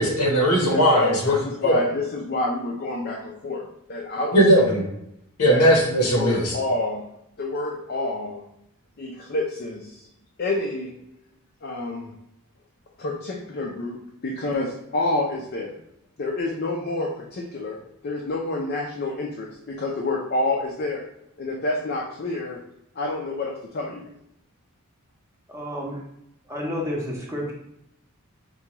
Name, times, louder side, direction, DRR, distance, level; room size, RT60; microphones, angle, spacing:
voice 1, 0.0-1.4 1.6-1.8 4.3-4.8 5.4-6.5, equal, 85° left, 0 dB, 1.0 m, -18 dB
voice 2, 0.7-4.7 5.5-5.7 6.0-7.0 7.4-8.4 9.0-10.0 10.4-11.0 11.6-12.1 13.0-15.8 16.2-21.0 21.4-22.6 23.0-24.1, left 2 dB, 45° left, -1 dB, 0.4 m, -28 dB
voice 3, 25.5-26.0 26.5-27.5, left 1 dB, 10° right, -3 dB, 0.7 m, -30 dB
4.5 x 2.3 x 2.9 m, 0.79 s
head